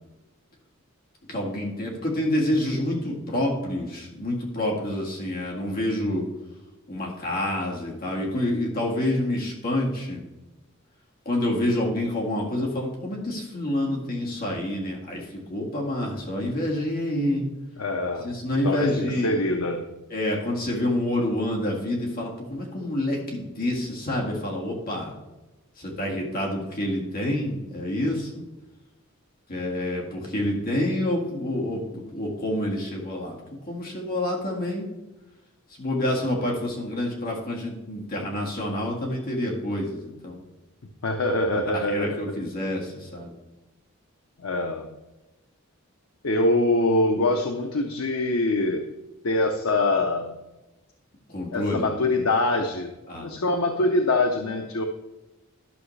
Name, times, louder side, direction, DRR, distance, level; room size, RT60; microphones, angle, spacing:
voice 1, 1.3-6.2 6.9-10.2 11.3-17.5 18.2-19.3 20.1-25.1 25.8-28.4 29.5-33.4 33.6-34.9 35.7-40.4 41.7-43.4 51.3-51.9 53.1-53.3, left 1 dB, 45° left, -2 dB, 1.9 m, -28 dB
voice 2, 17.8-18.3 18.6-19.8 41.0-42.2 44.4-44.9 46.2-48.9 49.2-50.3 51.5-54.8, left 2 dB, 80° left, 4 dB, 0.7 m, -24 dB
12.0 x 6.4 x 3.2 m, 1.1 s
head